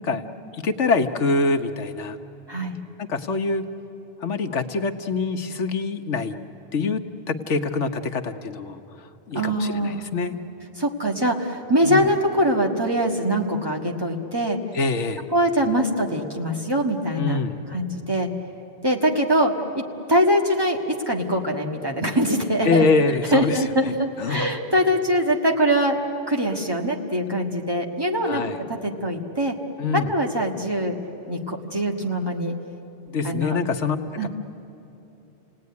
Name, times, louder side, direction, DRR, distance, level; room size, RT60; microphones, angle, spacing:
voice 1, 0.5-2.2 3.0-3.6 4.2-6.4 6.7-7.0 7.3-8.8 9.3-10.4 11.8-12.1 14.7-15.3 17.1-17.7 22.6-23.6 23.8-23.9 24.2-24.5 28.2-28.6 29.8-30.1 33.1-34.3, left 4 dB, 85° left, 7 dB, 1.4 m, -24 dB
voice 2, 9.3-10.0 10.8-14.6 15.3-17.4 17.7-18.3 18.8-19.8 20.1-22.9 23.3-26.0 26.3-28.4 28.7-29.5 29.9-31.0 31.3-32.5 33.2-33.6 34.2-34.3, equal, 20° right, 0 dB, 1.7 m, -23 dB
29.5 x 18.0 x 9.5 m, 3.0 s
omnidirectional pair, 1.2 m